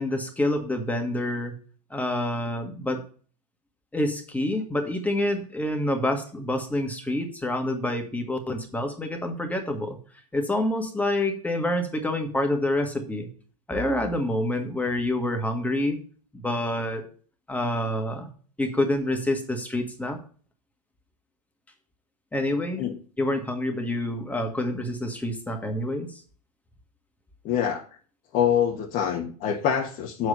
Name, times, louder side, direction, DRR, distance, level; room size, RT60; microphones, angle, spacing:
voice 1, 0.0-1.6 1.9-3.0 3.9-10.0 10.3-13.3 13.7-16.0 16.3-17.0 17.5-18.3 18.6-20.2 22.3-22.9 23.2-26.1, left 1 dB, 10° left, 5 dB, 2.0 m, -27 dB
voice 2, 27.4-27.9 28.3-30.3, left 8 dB, 45° left, 2 dB, 1.4 m, -25 dB
7.2 x 4.7 x 6.8 m, 0.41 s
hypercardioid pair, 100°, 18 cm